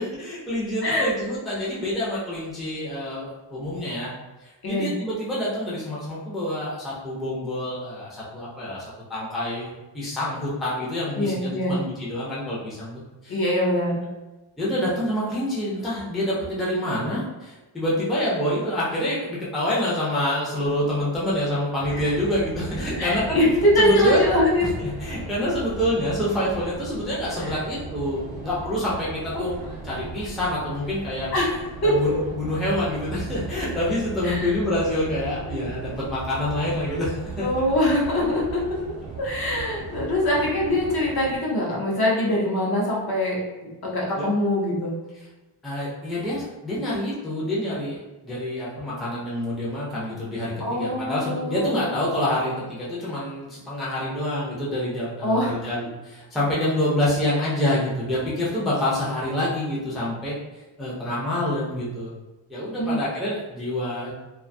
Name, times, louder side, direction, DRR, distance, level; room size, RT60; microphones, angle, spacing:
voice 1, 0.0-4.1 4.4-8.8 9.1-13.3 14.6-23.4 23.8-24.3 24.6-29.6 29.8-31.3 31.8-37.5 44.2-44.3 45.6-48.0 48.2-62.1 62.5-64.1, left 1 dB, ahead, -8 dB, 0.4 m, -27 dB
voice 2, 11.2-11.7 13.3-14.0 21.9-22.1 23.0-24.7 27.4-27.5 29.3-29.5 31.3-32.1 34.2-34.5 37.4-38.6 39.2-43.4 43.8-44.9 50.6-51.9 55.2-55.6 62.8-63.0, left 1 dB, 50° left, -4 dB, 0.7 m, -23 dB
sound 1, 21.8-41.4, right 3 dB, 70° right, 0.8 m, -37 dB
2.4 x 2.3 x 2.5 m, 1.1 s
wide cardioid pair, 170°, 49 cm